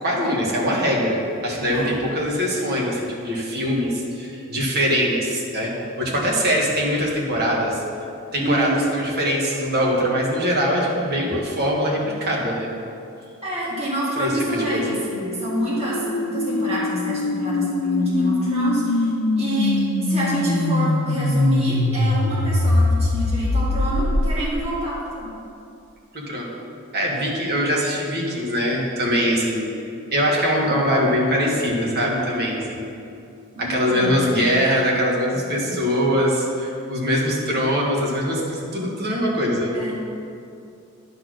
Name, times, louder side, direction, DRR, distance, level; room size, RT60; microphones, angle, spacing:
voice 1, 0.0-5.7 6.0-7.8 8.3-12.7 14.2-14.8 26.1-26.5 26.9-29.6 30.1-32.9 33.6-39.7, equal, 50° right, -3 dB, 1.6 m, -22 dB
voice 2, 8.4-8.8 13.4-19.1 19.4-19.7 20.0-25.3 32.3-32.5 33.6-34.3 35.7-35.8 39.7-39.9, right 1 dB, 30° right, -7 dB, 1.9 m, -27 dB
sound 1, 14.6-24.7, left 2 dB, 85° left, 0.6 m, -22 dB
10.0 x 4.2 x 6.4 m, 2.6 s
head